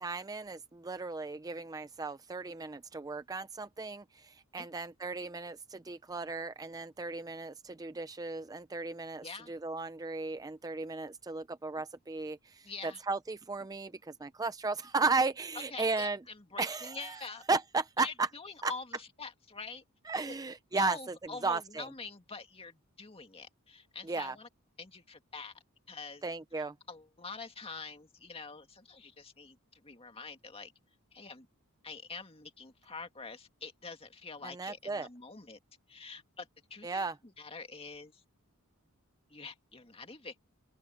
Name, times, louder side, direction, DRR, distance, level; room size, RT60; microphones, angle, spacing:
voice 1, 0.0-16.2 16.6-18.3 18.6-18.7 20.1-21.9 24.0-24.4 26.2-26.7 34.4-35.1 36.8-37.2, right 3 dB, 15° right, 0.5 m, -35 dB
voice 2, 9.2-9.5 12.6-13.0 15.7-17.4 18.0-19.8 20.3-20.4 20.7-24.5 24.8-25.5 25.9-26.2 26.6-30.7 31.1-31.5 31.8-35.6 35.9-38.2 39.3-40.5, left 4 dB, 25° left, 2.1 m, -46 dB
open air
head